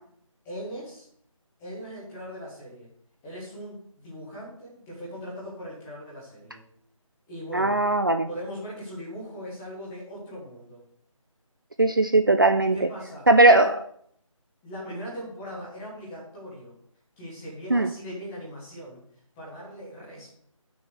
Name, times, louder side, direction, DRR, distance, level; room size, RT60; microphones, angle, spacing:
voice 1, 0.4-1.1 1.6-2.9 3.2-6.6 7.3-7.8 8.2-10.8 12.7-13.7 14.6-16.7 17.2-19.0 19.4-20.4, equal, 5° left, -6 dB, 0.8 m, -39 dB
voice 2, 7.5-8.3 11.8-12.9 13.3-13.7 17.7-17.9, right 2 dB, 40° right, 8 dB, 0.4 m, -19 dB
9.3 x 6.2 x 4.6 m, 0.65 s
figure-of-eight pair, 170°, 18 cm